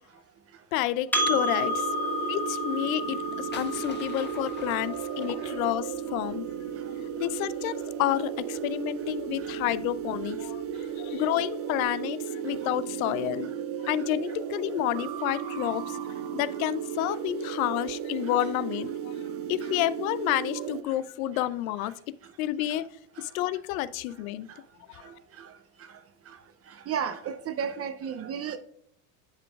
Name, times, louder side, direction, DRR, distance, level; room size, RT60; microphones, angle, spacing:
voice 1, 0.7-1.9 2.2-6.5 7.2-10.6 11.0-13.5 13.8-16.0 16.3-19.1 19.5-21.9 22.4-22.9 23.2-24.5 24.9-25.1, left 14 dB, 85° left, 0.5 m, -30 dB
Percussion, 1.1-5.9, left 1 dB, 5° left, 1.1 m, -31 dB
sound 1, 1.1-20.8, right 8 dB, 75° right, 0.7 m, -35 dB
sound 2, 3.0-6.0, left 5 dB, 25° left, 1.1 m, -45 dB
voice 2, 26.9-28.6, right 7 dB, 35° right, 0.6 m, -32 dB
11.0 x 3.8 x 2.3 m
supercardioid pair, 100°, 41 cm